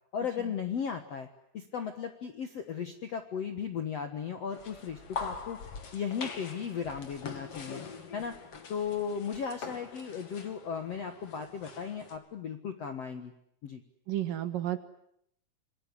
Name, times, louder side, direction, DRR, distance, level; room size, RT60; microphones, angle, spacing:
voice 1, 0.1-1.3 1.5-5.6 5.9-7.8 8.1-8.4 8.7-13.3 13.6-13.8, left 7 dB, 60° left, 7 dB, 1.6 m, -36 dB
sound 1, 4.5-12.2, left 5 dB, 40° left, 2.8 m, -43 dB
voice 2, 14.1-14.8, right 12 dB, 65° right, 10 dB, 2.6 m, -32 dB
27.0 x 21.0 x 9.8 m, 0.73 s
omnidirectional pair, 4.9 m